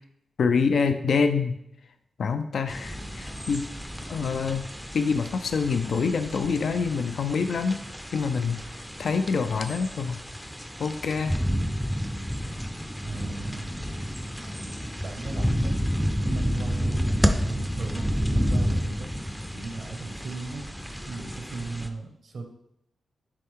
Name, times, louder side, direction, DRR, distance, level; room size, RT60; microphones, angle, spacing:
voice 1, 0.4-1.6 2.2-3.7 4.1-4.6 4.9-7.8 8.1-8.6 9.0-10.2 10.8-11.4, left 5 dB, 70° left, 8 dB, 0.5 m, -26 dB
sound 1, 2.7-21.9, equal, ahead, 0.5 m, -30 dB
voice 2, 13.0-13.7 15.0-19.1 19.5-20.6 21.1-22.4, right 3 dB, 70° right, 4 dB, 1.2 m, -37 dB
9.9 x 3.6 x 3.6 m, 0.77 s
wide cardioid pair, 115°, 0 cm